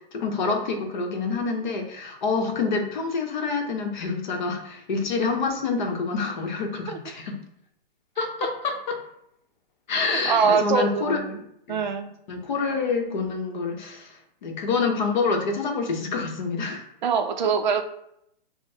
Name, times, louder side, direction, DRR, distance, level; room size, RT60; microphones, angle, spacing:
voice 1, 0.1-7.4 8.2-9.0 9.9-11.2 11.7-11.8 12.3-16.8, left 4 dB, 50° left, 3 dB, 0.8 m, -27 dB
voice 2, 10.1-11.4 11.7-12.1 17.0-17.8, right 6 dB, 50° right, 6 dB, 0.4 m, -23 dB
4.9 x 2.0 x 2.7 m, 0.75 s
hypercardioid pair, 155°, 29 cm